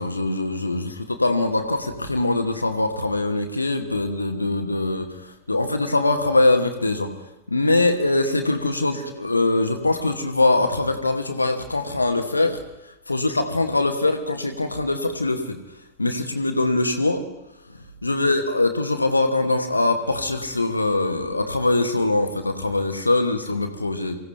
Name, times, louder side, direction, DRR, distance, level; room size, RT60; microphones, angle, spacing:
voice 1, 0.0-7.1 7.5-12.6 13.1-15.6 16.0-17.2 18.0-24.2, left 2 dB, 80° left, 6 dB, 1.2 m, -22 dB
24.0 x 16.0 x 3.3 m, 0.90 s
figure-of-eight pair, 90°, 0 cm